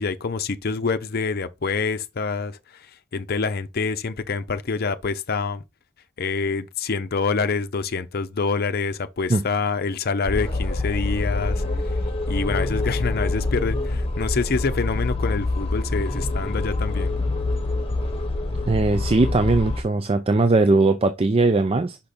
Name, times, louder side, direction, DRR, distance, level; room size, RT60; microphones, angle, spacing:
voice 1, 0.0-2.9 3.1-5.6 6.2-11.6 12.3-17.1, left 4 dB, 50° left, 0.6 m, -26 dB
sound 1, 10.2-19.8, left 2 dB, 30° left, 1.2 m, -25 dB
voice 2, 18.7-22.0, right 2 dB, 30° right, 0.5 m, -19 dB
5.8 x 5.0 x 4.2 m
head